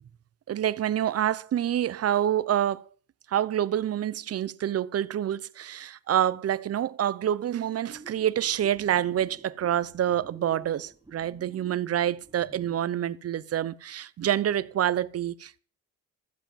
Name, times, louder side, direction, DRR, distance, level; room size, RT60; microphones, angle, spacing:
voice 1, 0.5-2.8 3.3-15.6, right 11 dB, 45° right, 0.8 m, -27 dB
sound 1, 7.9-12.9, right 3 dB, 10° right, 2.3 m, -50 dB
14.5 x 7.9 x 7.4 m
cardioid pair, 100°, 34 cm